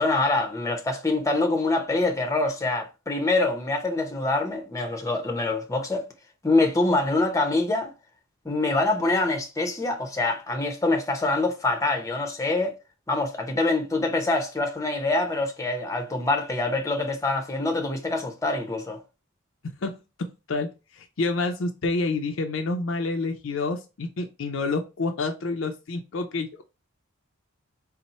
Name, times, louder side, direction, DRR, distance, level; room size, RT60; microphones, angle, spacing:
voice 1, 0.0-6.1 6.4-7.9 8.4-12.8 13.1-19.0, left 2 dB, 15° left, 0.7 m, -25 dB
voice 2, 19.8-26.6, left 3 dB, 65° left, 0.5 m, -28 dB
4.2 x 2.1 x 4.1 m
head